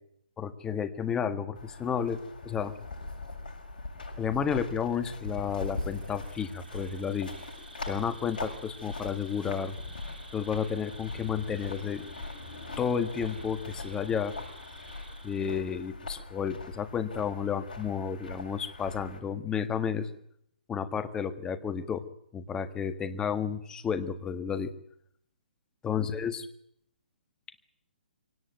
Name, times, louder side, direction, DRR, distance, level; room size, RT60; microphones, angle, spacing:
voice 1, 0.4-2.8 4.2-7.3 7.9-9.8 10.3-12.0 12.8-14.3 15.2-20.1 20.7-22.0 22.3-24.7 25.8-26.5, left 7 dB, 15° left, 11 dB, 1.6 m, -31 dB
sound 1, 1.5-19.2, left 2 dB, 65° left, 7.5 m, -41 dB
Insect, 5.2-16.0, right 2 dB, 80° right, 2.9 m, -52 dB
24.0 x 17.5 x 9.2 m, 0.73 s
figure-of-eight pair, 130°, 5 cm